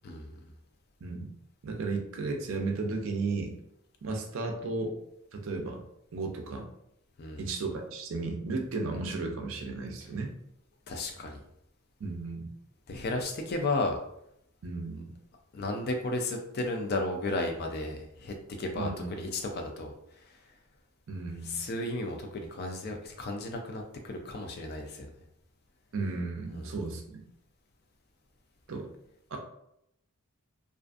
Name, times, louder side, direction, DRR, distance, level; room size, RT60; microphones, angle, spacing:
voice 1, 0.0-0.3 7.2-7.5 10.9-11.4 12.9-14.0 15.5-19.9 21.4-25.1 26.5-26.7, left 2 dB, 45° left, 3 dB, 0.4 m, -33 dB
voice 2, 1.0-1.3 1.6-3.6 4.0-5.0 5.3-5.8 6.1-6.7 7.4-10.3 12.0-12.5 14.6-15.1 18.7-19.2 21.1-21.6 25.9-27.2 28.7-28.9 29.3-29.4, right 3 dB, 60° right, 2 dB, 0.4 m, -34 dB
2.4 x 2.4 x 2.4 m, 0.77 s
head